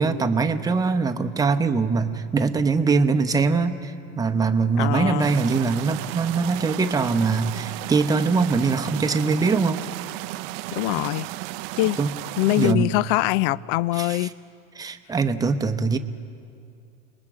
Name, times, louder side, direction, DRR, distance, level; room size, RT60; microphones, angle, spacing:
voice 1, 0.0-9.8 12.0-12.1 12.6-12.9 13.9-14.3 14.7-16.0, right 4 dB, 10° right, 7 dB, 0.9 m, -22 dB
voice 2, 4.8-5.3 10.7-11.3 11.8-12.0 12.4-14.3, left 18 dB, 50° left, 21 dB, 0.5 m, -23 dB
sound 1, 5.2-12.7, right 19 dB, 50° right, 0.6 m, -34 dB
29.0 x 20.0 x 4.9 m, 2.4 s
hypercardioid pair, 115°, 36 cm